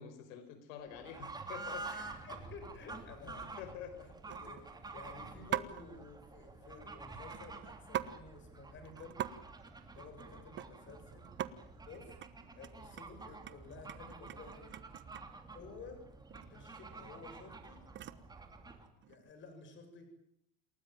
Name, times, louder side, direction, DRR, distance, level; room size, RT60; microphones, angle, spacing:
voice 1, 0.0-1.9 3.2-4.0 10.3-10.4, left 8 dB, 80° left, 10 dB, 4.7 m, -48 dB
Fowl / Bird, 0.9-18.9, right 3 dB, 10° right, 2.9 m, -49 dB
sound 1, 1.3-1.6 2.1-2.4 2.7-2.8 3.1-3.5 4.3-4.8 5.5-5.8 7.2-8.2 8.5-8.6 8.8-9.3 9.6-11.0 11.2-11.5 11.9-12.3 12.6-15.4 16.3-16.5 16.8-18.3 19.0-19.3, right 11 dB, 30° right, 1.2 m, -43 dB
voice 2, 1.8-9.2 9.9-12.2 12.6-14.8 15.5-16.0 16.5-17.8 19.0-20.1, left 4 dB, 30° left, 7 dB, 7.7 m, -53 dB
28.5 x 19.0 x 9.1 m, 0.74 s
cardioid pair, 165°, 40 cm